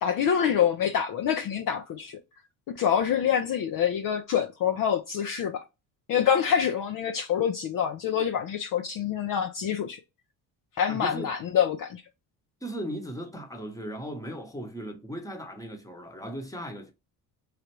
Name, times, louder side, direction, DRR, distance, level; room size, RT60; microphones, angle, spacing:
voice 1, 0.0-2.2 2.7-5.6 6.1-10.0 10.8-12.0, left 8 dB, 50° left, 0.5 m, -26 dB
voice 2, 10.9-11.3 12.6-16.9, equal, 10° left, 1.0 m, -37 dB
3.3 x 2.4 x 2.9 m
supercardioid pair, 70°, 42 cm